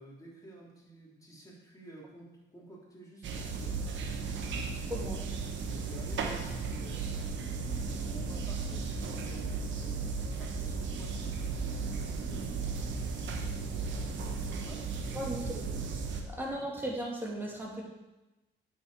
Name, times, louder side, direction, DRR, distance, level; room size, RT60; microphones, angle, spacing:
voice 1, 0.0-4.6 5.8-7.2 8.0-13.2 14.4-15.7 16.3-16.5, right 1 dB, 15° left, -4 dB, 3.0 m, -52 dB
sound 1, 3.2-16.2, right 4 dB, 70° right, 1.2 m, -35 dB
voice 2, 4.9-5.2 15.1-15.6 16.3-17.8, right 1 dB, 10° right, -3 dB, 2.5 m, -36 dB
8.3 x 6.6 x 4.7 m, 1.0 s
cardioid pair, 90°, 20 cm